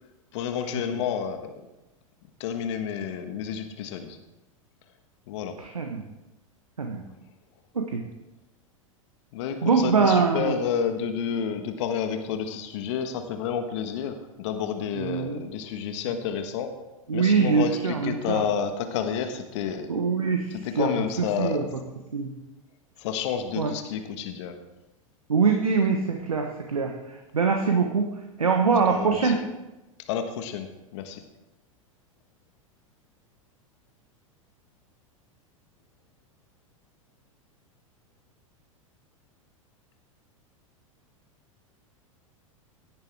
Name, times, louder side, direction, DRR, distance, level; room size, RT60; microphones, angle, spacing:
voice 1, 0.3-1.5 2.4-4.2 5.3-5.6 9.3-16.7 17.1-19.9 20.5-21.7 23.0-24.5 28.9-29.4 30.1-31.2, left 7 dB, 60° left, 7 dB, 1.5 m, -30 dB
voice 2, 5.6-6.0 6.8-7.0 7.7-8.0 9.6-10.6 14.9-15.5 17.1-18.4 19.9-20.9 21.4-21.6 22.1-22.3 23.6-23.7 25.3-28.0 28.4-29.4, right 5 dB, 85° right, 3 dB, 1.3 m, -23 dB
17.0 x 10.5 x 3.5 m, 1.0 s
figure-of-eight pair, 90°, 18 cm